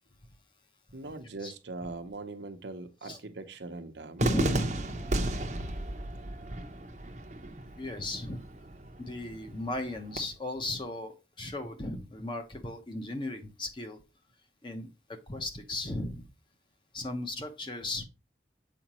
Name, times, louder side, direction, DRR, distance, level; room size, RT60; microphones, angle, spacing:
voice 1, 0.9-4.6, right 3 dB, 70° right, 0.8 m, -41 dB
voice 2, 4.2-5.2 5.5-5.7 7.8-8.4 9.0-14.0 14.6-14.9 15.3-16.3 16.9-18.0, left 1 dB, 25° left, 0.9 m, -36 dB
Cheering / Fireworks, 4.2-10.2, right 1 dB, 40° right, 0.7 m, -34 dB
7.2 x 4.9 x 3.0 m
head